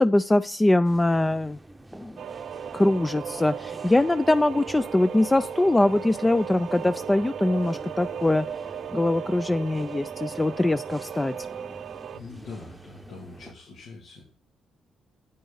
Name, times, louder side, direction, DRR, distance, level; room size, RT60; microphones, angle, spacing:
voice 1, 0.0-1.6 1.9-2.2 2.7-8.5 8.9-11.3, left 2 dB, 15° left, 12 dB, 0.3 m, -22 dB
sound 1, 0.8-13.5, right 1 dB, 10° right, 0.8 m, -47 dB
sound 2, 2.2-12.2, right 8 dB, 65° right, 0.5 m, -36 dB
voice 2, 12.1-14.2, left 4 dB, 80° left, -1 dB, 2.4 m, -43 dB
9.2 x 9.0 x 3.9 m, 0.43 s
cardioid pair, 90°, 0 cm